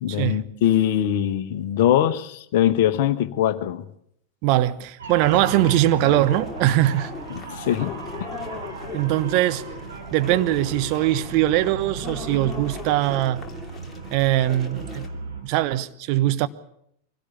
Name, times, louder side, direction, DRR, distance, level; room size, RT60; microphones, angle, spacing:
voice 1, 0.0-3.8 7.3-8.3, left 11 dB, 50° left, 1.2 m, -22 dB
voice 2, 4.4-7.1 8.9-9.6 10.1-13.4 14.1-15.1 15.4-16.5, right 14 dB, 45° right, 1.1 m, -21 dB
sound 1, 5.0-15.4, right 3 dB, 65° right, 5.4 m, -35 dB
sound 2, 5.2-15.1, left 4 dB, 15° left, 2.7 m, -39 dB
24.0 x 17.0 x 8.6 m
figure-of-eight pair, 90°, 0 cm